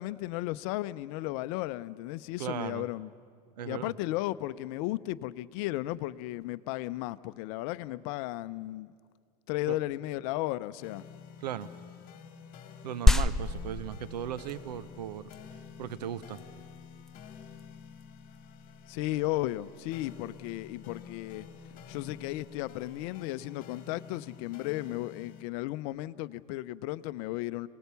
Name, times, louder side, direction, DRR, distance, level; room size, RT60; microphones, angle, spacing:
voice 1, 0.0-3.1 3.7-8.9 9.5-11.1 18.9-27.7, left 17 dB, 60° left, 15 dB, 0.7 m, -35 dB
voice 2, 2.4-2.9 3.6-3.9 9.7-9.8 11.4-11.7 12.8-15.3 15.8-16.4, right 10 dB, 90° right, 15 dB, 0.7 m, -37 dB
sound 1, 10.8-25.4, left 7 dB, 45° left, 2.0 m, -50 dB
sound 2, 13.1-23.0, left 2 dB, ahead, 0.7 m, -32 dB
27.0 x 19.0 x 6.9 m, 2.1 s
hypercardioid pair, 100°, 21 cm